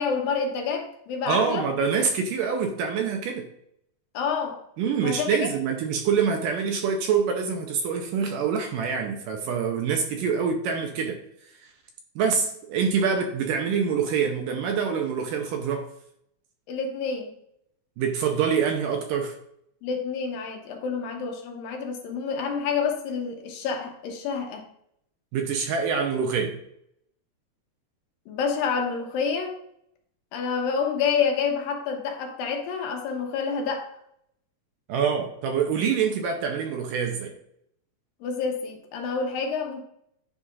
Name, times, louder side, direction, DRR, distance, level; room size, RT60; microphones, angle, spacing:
voice 1, 0.0-1.7 4.1-4.6 5.0-5.5 16.7-17.3 19.8-24.6 28.3-29.5 30.3-33.9 38.2-39.8, left 5 dB, 75° left, 3 dB, 2.5 m, -28 dB
voice 2, 1.3-3.5 4.8-11.2 11.6-11.7 12.2-15.9 18.0-19.4 25.3-26.6 34.9-37.3, right 6 dB, 75° right, 3 dB, 2.2 m, -25 dB
9.9 x 5.5 x 2.4 m, 0.73 s
omnidirectional pair, 4.3 m